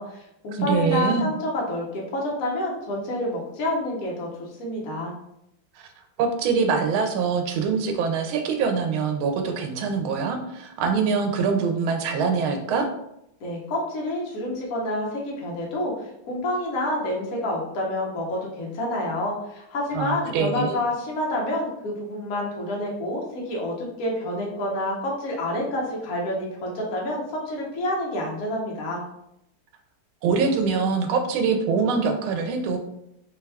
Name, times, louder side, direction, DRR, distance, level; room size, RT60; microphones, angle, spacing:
voice 1, 0.0-5.1 13.4-29.0, left 1 dB, 50° left, -2 dB, 1.2 m, -28 dB
voice 2, 0.5-1.3 5.8-5.9 6.2-12.9 19.9-20.8 30.2-32.8, right 5 dB, 90° right, 5 dB, 1.4 m, -24 dB
4.3 x 2.3 x 3.3 m, 0.79 s
omnidirectional pair, 2.2 m